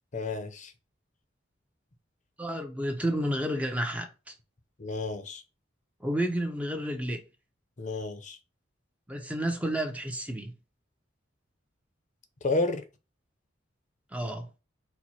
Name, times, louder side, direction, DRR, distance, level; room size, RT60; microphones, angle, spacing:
voice 1, 0.1-0.7 4.8-5.4 7.8-8.4 12.4-12.9, left 2 dB, 40° left, 0.7 m, -31 dB
voice 2, 2.4-4.3 6.0-7.2 9.1-10.5 14.1-14.5, equal, 5° right, 0.7 m, -31 dB
4.5 x 2.2 x 4.2 m
head